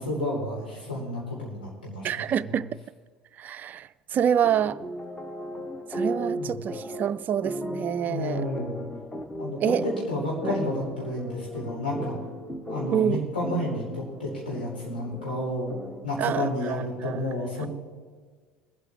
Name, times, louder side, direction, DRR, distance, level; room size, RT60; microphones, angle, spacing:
voice 1, 0.0-2.6 6.3-6.5 8.1-8.8 9.4-12.1 12.7-15.7 16.0-17.7, left 1 dB, 80° left, -5 dB, 4.2 m, -31 dB
voice 2, 2.0-2.7 3.4-4.8 5.9-8.5 9.6-9.8 10.4-10.6 12.9-13.2 16.2-17.3 17.6-17.7, right 9 dB, 35° right, 15 dB, 0.3 m, -27 dB
sound 1, 4.4-16.2, equal, 10° left, 1.0 m, -36 dB
22.0 x 8.2 x 3.6 m, 1.5 s
figure-of-eight pair, 65°, 5 cm